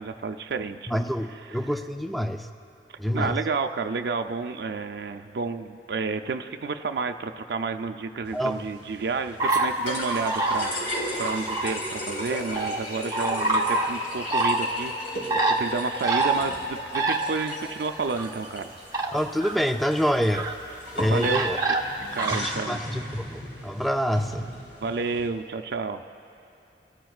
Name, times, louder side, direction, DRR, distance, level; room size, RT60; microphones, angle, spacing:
voice 1, 0.0-0.9 3.1-10.7 11.2-14.9 15.6-18.7 21.1-21.8 22.1-22.8 24.8-26.0, right 4 dB, 70° right, 6 dB, 0.4 m, -30 dB
voice 2, 0.9-2.5 3.0-3.4 8.3-8.6 19.1-20.5 20.9-21.6 22.3-24.4, equal, ahead, 6 dB, 0.3 m, -26 dB
sound 1, 8.2-25.3, equal, 85° left, 3.6 m, -37 dB
sound 2, 9.4-9.7 10.0-10.7 11.1-11.7 12.6-12.8 13.1-13.9 14.3-14.6 15.3-15.5 16.0-16.3 16.9-17.2 17.8-18.3 18.9-19.1 19.4-19.6 20.3-20.6 21.2-22.4, right 2 dB, 20° right, 0.8 m, -25 dB
24.5 x 13.5 x 2.4 m, 2.8 s
head